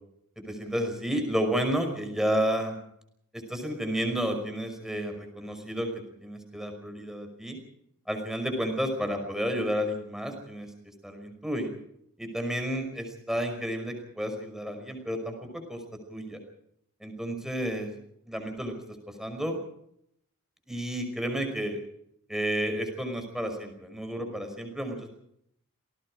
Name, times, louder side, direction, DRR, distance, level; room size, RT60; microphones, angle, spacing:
voice 1, 0.4-2.8 3.3-5.9 6.2-7.6 8.1-10.7 11.0-11.7 12.2-15.8 16.1-16.4 17.0-17.9 18.3-18.7 19.2-19.6 20.7-21.8 22.3-25.1, equal, ahead, 5 dB, 5.5 m, -31 dB
28.0 x 19.0 x 5.0 m, 0.73 s
head